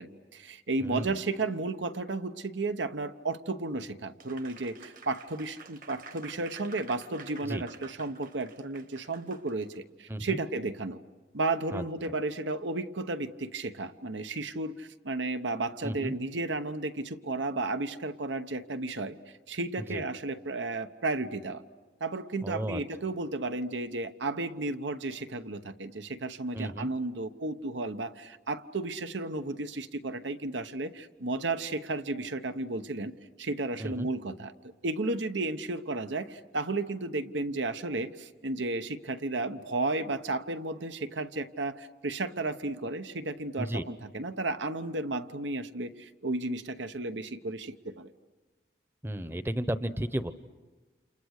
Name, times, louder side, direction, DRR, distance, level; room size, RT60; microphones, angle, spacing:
voice 1, 0.0-11.0 11.3-19.2 19.5-21.6 22.0-34.5 34.8-48.1, right 2 dB, 90° right, 10 dB, 1.1 m, -33 dB
voice 2, 0.8-1.2 7.4-7.6 10.1-10.4 11.7-11.8 15.8-16.1 19.8-20.0 22.4-22.8 26.5-26.9 33.8-34.1 43.6-43.8 49.0-50.3, right 1 dB, 15° right, 12 dB, 0.8 m, -33 dB
Applause, 4.2-9.8, right 4 dB, 45° right, 1.4 m, -50 dB
29.5 x 28.5 x 6.6 m, 1.3 s
head